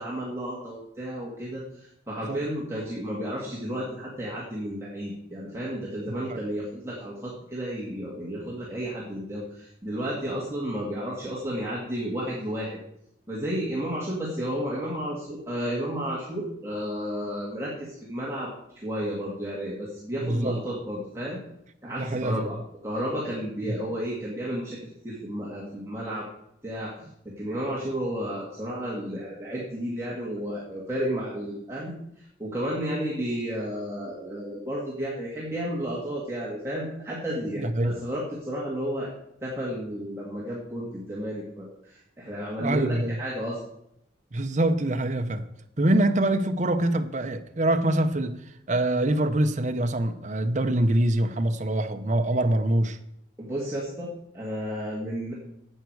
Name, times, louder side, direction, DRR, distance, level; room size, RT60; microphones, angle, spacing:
voice 1, 0.0-12.8 13.3-18.5 18.8-21.4 21.8-22.6 22.8-24.8 25.0-26.2 26.6-26.9 27.4-31.9 32.4-39.1 39.4-43.6 53.4-54.1 54.3-55.3, equal, 15° right, 2.0 m, -32 dB
voice 2, 6.1-6.4 20.2-20.6 22.0-22.5 23.7-23.8 37.6-38.0 42.6-43.2 44.3-45.5 45.8-48.4 48.7-53.0, right 1 dB, 40° right, 0.7 m, -24 dB
11.0 x 8.2 x 4.7 m
head